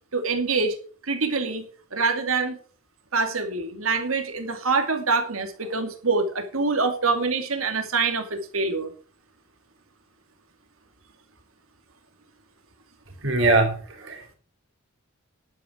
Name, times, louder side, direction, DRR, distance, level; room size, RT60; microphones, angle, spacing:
voice 1, 0.1-0.7 1.1-1.7 1.9-2.6 3.1-8.9, right 4 dB, 90° right, 6 dB, 2.5 m, -25 dB
voice 2, 13.2-13.7 14.1-14.3, right 2 dB, 65° right, 4 dB, 3.9 m, -21 dB
11.0 x 9.1 x 5.0 m, 0.41 s
head